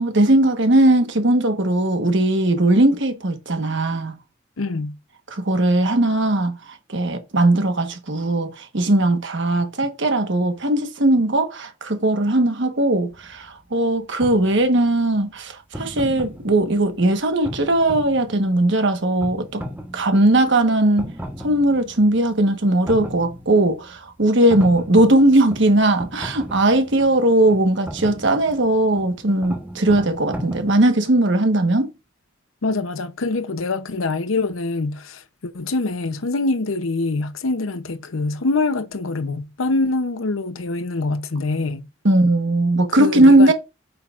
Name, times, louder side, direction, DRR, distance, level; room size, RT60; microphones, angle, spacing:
voice 1, 0.0-4.1 5.3-19.6 19.9-21.1 21.4-31.9 42.0-43.5, right 1 dB, 60° right, 1.3 m, -18 dB
voice 2, 4.6-5.0 32.6-41.9 42.9-43.5, left 3 dB, 90° left, 0.8 m, -24 dB
sound 1, 13.1-30.9, equal, 10° right, 1.2 m, -37 dB
8.7 x 5.7 x 2.5 m
head